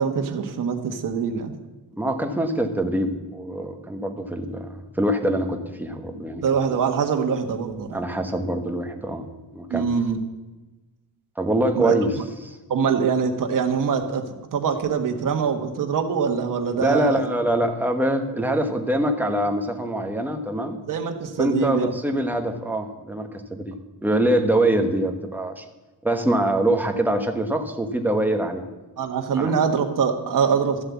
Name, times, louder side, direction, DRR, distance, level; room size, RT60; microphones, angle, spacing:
voice 1, 0.0-1.5 6.4-8.0 9.7-10.2 11.7-11.9 12.7-14.2 14.5-17.2 20.9-21.9 29.0-30.8, right 6 dB, 55° right, 4 dB, 1.5 m, -23 dB
voice 2, 2.0-6.4 6.7-6.8 7.9-9.3 9.5-9.9 11.4-12.1 12.4-12.6 16.8-20.8 21.4-25.6 26.0-28.6 29.4-29.5, right 1 dB, 5° right, 4 dB, 1.1 m, -24 dB
13.0 x 7.8 x 8.2 m, 1.1 s
wide cardioid pair, 170°, 38 cm